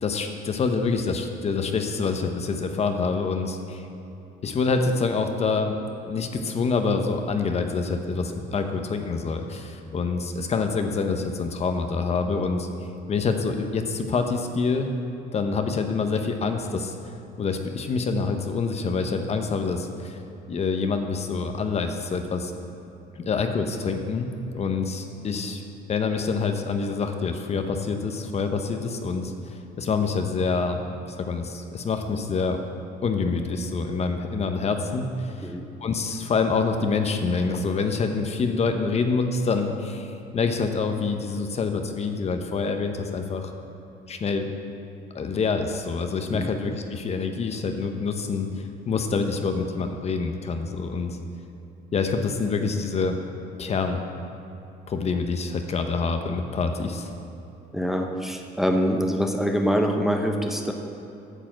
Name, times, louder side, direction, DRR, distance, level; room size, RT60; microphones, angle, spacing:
voice 1, 0.0-3.8 4.4-5.7 6.0-12.7 13.1-14.9 15.3-16.9 17.4-20.2 20.5-22.5 23.2-25.6 25.9-30.8 31.2-32.6 33.0-35.5 35.8-43.5 44.1-44.5 45.1-48.5 48.9-51.2 51.9-53.2 53.6-54.0 54.9-57.1, left 4 dB, 40° left, 6 dB, 0.9 m, -26 dB
voice 2, 57.7-60.7, equal, ahead, 3 dB, 0.8 m, -24 dB
9.1 x 6.9 x 7.5 m, 2.9 s
cardioid pair, 110°, 17 cm